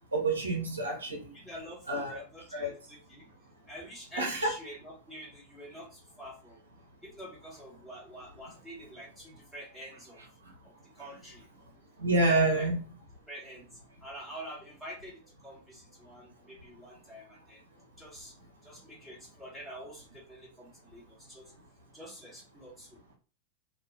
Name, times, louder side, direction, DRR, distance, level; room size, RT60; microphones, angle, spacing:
voice 1, 0.1-1.3 1.9-2.2 2.5-2.7 4.2-4.5 12.0-12.8, right 2 dB, 75° right, 0.7 m, -28 dB
voice 2, 1.3-3.3 3.7-6.6 7.0-10.2 10.6-11.4 12.4-12.7 13.3-13.7 14.0-17.6 18.0-18.3 18.6-21.5 21.9-23.0, equal, ahead, 1.3 m, -47 dB
2.4 x 2.3 x 2.3 m
figure-of-eight pair, 90°, 0 cm